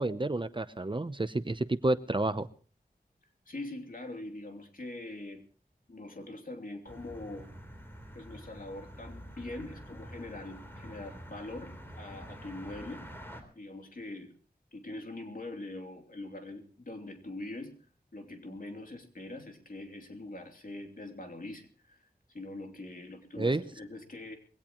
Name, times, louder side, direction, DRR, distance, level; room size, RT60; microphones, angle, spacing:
voice 1, 0.0-2.5 23.4-23.6, right 2 dB, 30° right, 13 dB, 0.7 m, -30 dB
voice 2, 3.5-5.5 5.9-7.5 8.1-13.1 13.5-14.3 14.7-17.8 18.1-22.0 22.3-24.4, left 2 dB, 60° left, 3 dB, 2.9 m, -43 dB
sound 1, 6.9-13.4, equal, 15° left, 3.7 m, -47 dB
21.5 x 17.0 x 3.0 m, 0.40 s
wide cardioid pair, 70°, 16 cm